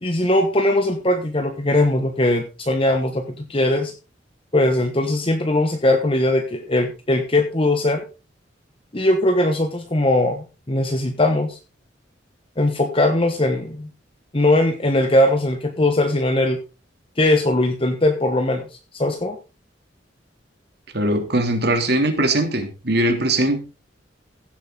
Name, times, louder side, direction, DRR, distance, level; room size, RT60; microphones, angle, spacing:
voice 1, 0.0-3.9 4.5-8.0 8.9-11.6 12.6-13.9 14.3-16.6 17.2-18.6 18.9-19.4, left 1 dB, 30° left, 6 dB, 1.2 m, -20 dB
voice 2, 20.9-23.6, right 1 dB, 60° right, 5 dB, 3.0 m, -20 dB
16.0 x 8.2 x 3.9 m, 0.30 s
head